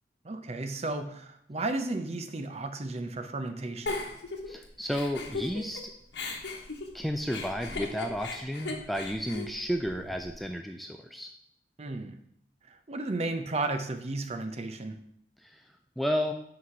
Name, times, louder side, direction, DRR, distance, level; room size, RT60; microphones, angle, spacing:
voice 1, 0.2-4.0 11.8-12.2 12.9-15.0, right 2 dB, 35° right, 8 dB, 0.6 m, -33 dB
Giggle, 3.9-5.8 6.1-10.4, left 3 dB, 75° left, 1.1 m, -37 dB
voice 2, 4.5-5.8 6.9-11.3 15.4-15.6 16.0-16.3, equal, ahead, 4 dB, 0.3 m, -32 dB
6.1 x 4.8 x 5.6 m, 0.70 s
head